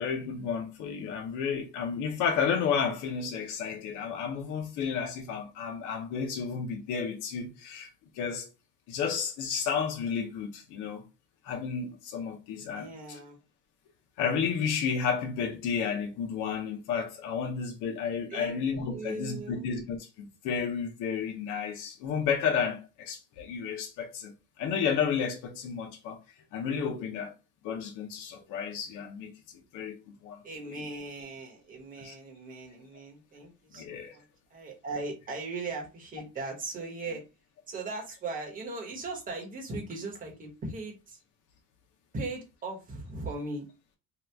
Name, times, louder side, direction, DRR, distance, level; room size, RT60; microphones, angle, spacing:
voice 1, 0.0-7.9 8.1-8.5 8.9-11.0 11.4-13.2 14.2-24.3 24.6-26.2 26.5-27.3 27.6-29.3 29.7-30.8 32.0-32.2 33.8-34.2, left 6 dB, 70° left, 0.7 m, -32 dB
voice 2, 12.7-13.4 18.3-18.6 18.9-19.7 30.4-34.2 34.5-37.2 37.7-41.2 42.1-43.7, right 3 dB, 25° right, 1.0 m, -38 dB
2.8 x 2.3 x 3.3 m
cardioid pair, 155°, 32 cm